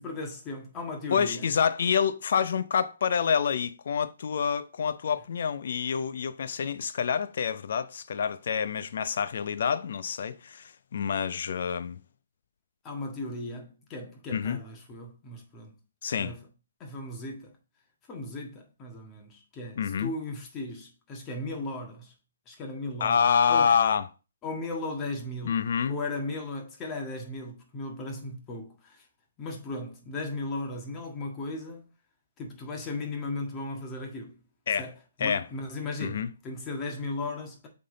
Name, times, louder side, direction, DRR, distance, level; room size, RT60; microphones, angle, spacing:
voice 1, 0.0-1.5 12.8-15.7 16.2-16.5 16.8-17.5 18.1-22.1 22.5-23.7 24.4-29.1 29.4-31.8 32.4-34.4 34.8-34.9 35.2-37.7, left 2 dB, 20° left, 1.6 m, -36 dB
voice 2, 1.1-12.0 14.3-14.6 16.0-16.3 19.8-20.1 23.0-24.1 25.4-26.0 34.7-34.9 35.2-35.4 36.0-36.3, left 7 dB, 60° left, 0.6 m, -27 dB
7.5 x 3.8 x 3.9 m
hypercardioid pair, 145°, 0 cm